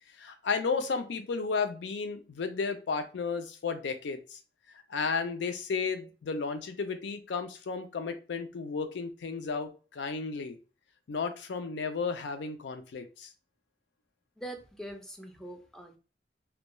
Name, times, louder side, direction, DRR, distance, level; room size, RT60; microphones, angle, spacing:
voice 1, 0.2-4.4 4.9-10.6 11.1-13.3, left 5 dB, 90° left, 8 dB, 0.4 m, -33 dB
voice 2, 14.4-16.0, right 1 dB, 5° left, 4 dB, 0.3 m, -43 dB
2.2 x 2.2 x 2.9 m, 0.34 s
head